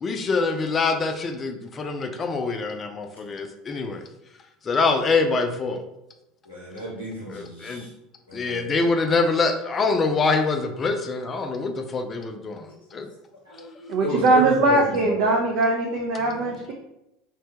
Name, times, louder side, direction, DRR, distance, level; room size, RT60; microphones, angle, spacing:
voice 1, 0.0-4.0 4.6-5.8 7.3-7.9 8.3-13.1, left 4 dB, 30° left, 6 dB, 0.4 m, -25 dB
voice 2, 6.5-7.9 8.3-8.7 13.5-15.3, left 1 dB, 80° left, -5 dB, 0.7 m, -31 dB
voice 3, 13.9-16.7, right 2 dB, 55° right, 1 dB, 0.4 m, -21 dB
3.2 x 2.2 x 2.9 m, 0.87 s
figure-of-eight pair, 70°, 0 cm